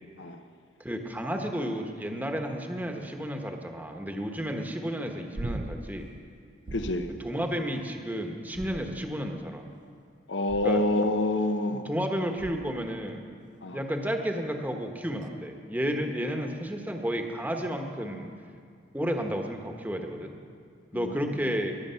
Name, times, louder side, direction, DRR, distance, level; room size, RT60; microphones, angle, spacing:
voice 1, 0.8-6.1 7.2-9.6 10.6-10.8 11.7-13.3 13.7-18.3 18.9-20.4 20.9-21.8, equal, 10° right, 3 dB, 1.1 m, -32 dB
sound 1, 5.4-6.0 6.7-7.2 8.5-9.3 10.5-10.9 12.4-12.8 15.2-15.3, right 2 dB, 45° right, 0.6 m, -39 dB
voice 2, 6.7-7.1 10.3-11.8 13.6-13.8 20.9-21.3, left 2 dB, 85° left, 8 dB, 1.0 m, -27 dB
22.0 x 8.7 x 5.7 m, 2.3 s
head